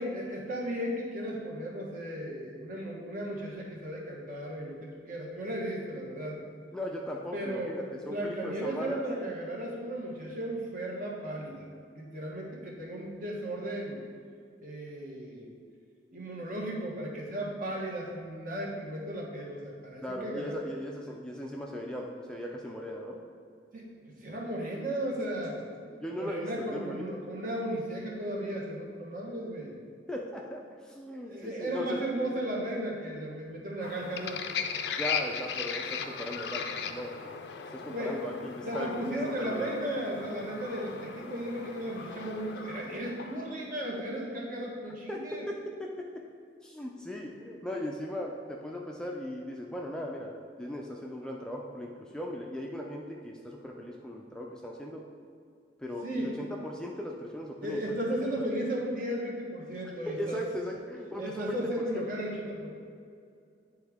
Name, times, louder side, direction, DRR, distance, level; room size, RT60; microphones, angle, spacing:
voice 1, 0.0-6.4 7.3-7.7 8.1-11.7 11.9-14.0 14.6-15.5 16.1-20.5 23.7-25.6 26.1-29.8 31.2-34.4 37.8-38.2 38.6-45.4 56.0-56.4 57.6-60.4 61.2-62.7, right 1 dB, 50° right, -2 dB, 1.3 m, -35 dB
voice 2, 6.7-9.0 20.0-23.2 25.8-27.1 30.1-32.0 34.8-37.4 37.7-39.7 45.1-45.2 45.5-46.2 46.6-55.0 55.8-57.8 58.4-58.5 60.1-61.9, equal, 5° left, -1 dB, 0.4 m, -38 dB
sound 1, 33.8-43.6, left 6 dB, 65° left, 0.4 m, -38 dB
9.4 x 3.5 x 3.5 m, 2.3 s
head